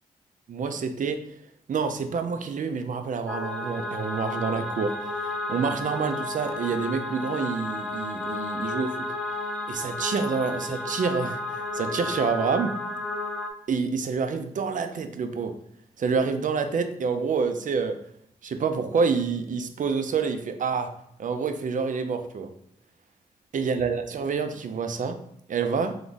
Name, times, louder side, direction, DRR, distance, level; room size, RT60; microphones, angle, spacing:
voice 1, 0.5-1.2 1.7-9.1 9.7-12.7 13.7-15.5 16.0-18.0 18.4-20.9 21.2-22.5 23.5-25.2 25.5-26.0, right 5 dB, 60° right, 7 dB, 0.5 m, -27 dB
sound 1, 3.3-13.5, left 2 dB, ahead, 0.8 m, -32 dB
3.5 x 3.0 x 3.9 m, 0.70 s
cardioid pair, 55°, 15 cm